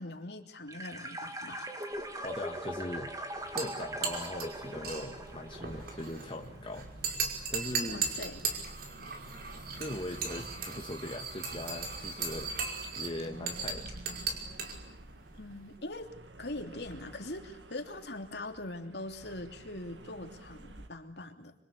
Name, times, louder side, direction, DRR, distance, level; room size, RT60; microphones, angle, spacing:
voice 1, 0.0-1.7 2.1-2.2 7.8-8.6 15.3-16.1 16.4-21.5, left 2 dB, 65° left, 4 dB, 3.1 m, -42 dB
sound 1, 0.7-6.4, right 1 dB, 20° right, 2.8 m, -41 dB
sound 2, 1.9-20.9, right 1 dB, 75° right, 2.2 m, -51 dB
voice 2, 2.2-3.1 3.5-6.9 7.5-8.1 9.8-12.6 12.9-14.0, left 1 dB, 30° left, 2 dB, 2.0 m, -40 dB
sound 3, 3.4-15.8, right 5 dB, 55° right, 5.4 m, -38 dB
26.5 x 26.0 x 8.4 m, 0.75 s
head